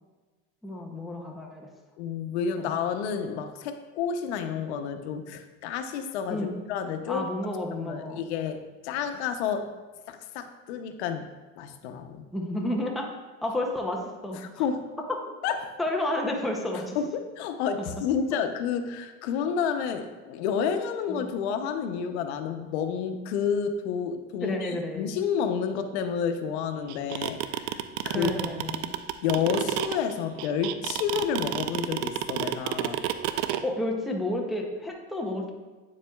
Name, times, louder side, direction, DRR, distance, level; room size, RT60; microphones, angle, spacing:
voice 1, 0.6-1.7 2.6-2.8 6.3-6.5 7.1-8.2 12.3-13.1 13.4-14.6 15.8-17.0 17.8-17.9 21.1-21.2 24.4-25.1 28.1-29.0 33.6-35.5, left 1 dB, ahead, 0 dB, 0.5 m, -31 dB
voice 2, 2.0-7.2 7.7-9.7 10.1-11.3 11.6-12.2 14.6-14.8 15.4-15.8 16.9-24.6 25.0-28.3 29.2-33.0, left 7 dB, 85° left, 8 dB, 0.7 m, -30 dB
sound 1, 26.9-33.6, right 13 dB, 80° right, 0.5 m, -29 dB
8.6 x 7.3 x 2.3 m, 1.3 s
supercardioid pair, 155°, 32 cm